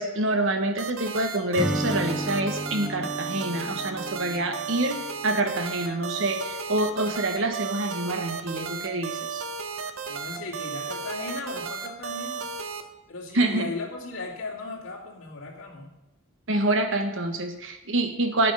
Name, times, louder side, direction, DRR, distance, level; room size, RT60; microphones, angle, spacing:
voice 1, 0.0-9.4 13.3-13.7 16.5-18.5, right 2 dB, 65° right, 6 dB, 1.3 m, -27 dB
sound 1, 0.8-12.8, right 5 dB, 85° right, 0.9 m, -34 dB
Acoustic guitar / Strum, 1.5-5.5, equal, 5° right, 0.4 m, -33 dB
voice 2, 10.1-12.5 13.1-15.9, left 3 dB, 75° left, -2 dB, 2.5 m, -36 dB
10.5 x 8.3 x 5.6 m, 0.92 s
head